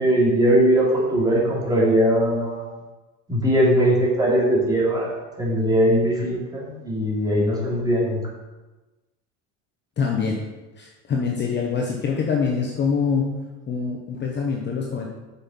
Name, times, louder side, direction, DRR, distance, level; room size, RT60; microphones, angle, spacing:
voice 1, 0.0-2.7 3.3-5.1 5.4-8.2, equal, 10° right, -6 dB, 3.2 m, -20 dB
voice 2, 10.0-10.4 10.8-13.3 13.7-15.1, left 5 dB, 30° left, 0 dB, 1.0 m, -24 dB
7.9 x 6.2 x 5.5 m, 1.2 s
cardioid pair, 130°, 36 cm